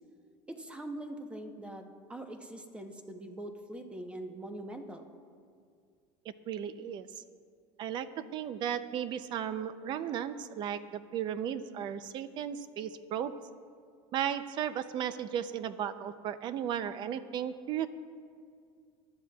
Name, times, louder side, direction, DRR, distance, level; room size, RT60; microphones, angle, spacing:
voice 1, 0.5-5.1, right 1 dB, 10° right, 5 dB, 0.8 m, -43 dB
voice 2, 6.5-7.1 7.8-13.4 14.1-17.9, right 9 dB, 40° right, 13 dB, 0.5 m, -35 dB
21.5 x 12.0 x 2.3 m, 2.3 s
cardioid pair, 150°, 12 cm